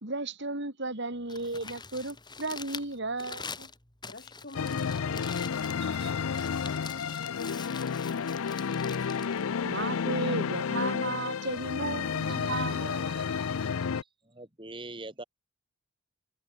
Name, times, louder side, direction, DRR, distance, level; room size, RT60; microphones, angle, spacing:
voice 1, 0.0-3.7 5.8-6.2 9.6-13.5, right 2 dB, 55° right, 3.2 m, -35 dB
Crumpling crinkling, 1.1-10.3, left 5 dB, 20° left, 4.8 m, -45 dB
voice 2, 4.1-9.0, left 2 dB, 45° left, 2.1 m, -50 dB
sound 1, 4.5-14.0, left 6 dB, 70° left, 0.5 m, -31 dB
voice 3, 13.2-13.8 14.3-15.2, right 2 dB, 25° right, 3.1 m, -44 dB
head